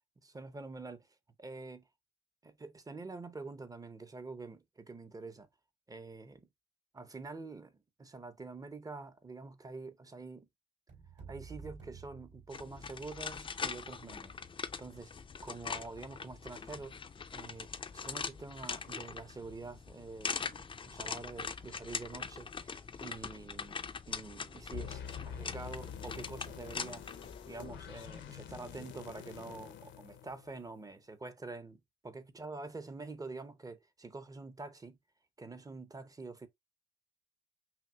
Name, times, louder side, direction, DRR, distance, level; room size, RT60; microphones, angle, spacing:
voice 1, 0.2-1.1 1.4-1.8 2.4-5.5 5.9-6.5 6.9-7.7 8.0-10.5 11.1-14.4 14.8-15.1 15.4-17.0 17.3-27.0 27.5-35.0 35.4-36.5, right 3 dB, 20° right, 0.6 m, -46 dB
sound 1, 10.9-13.2, right 5 dB, 65° right, 2.7 m, -51 dB
sound 2, 12.5-28.3, left 5 dB, 25° left, 0.4 m, -42 dB
sound 3, 24.7-30.9, left 8 dB, 70° left, 0.6 m, -47 dB
5.7 x 2.4 x 2.3 m
cardioid pair, 90°, 20 cm